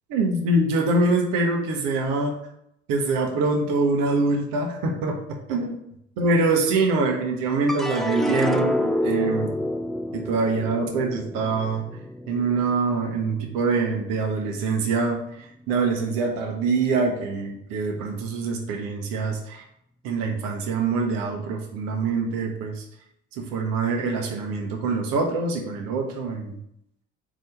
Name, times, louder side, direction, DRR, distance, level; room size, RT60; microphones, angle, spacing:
voice 1, 0.1-2.3 2.9-5.8 6.2-9.5 10.1-11.9 12.3-15.2 15.7-19.6 20.0-22.8 23.4-26.6, right 3 dB, 65° right, 1 dB, 1.4 m, -24 dB
sound 1, 7.7-14.1 14.6-15.3, left 1 dB, ahead, 0.5 m, -29 dB
5.0 x 3.8 x 5.6 m, 0.77 s
hypercardioid pair, 50°, 36 cm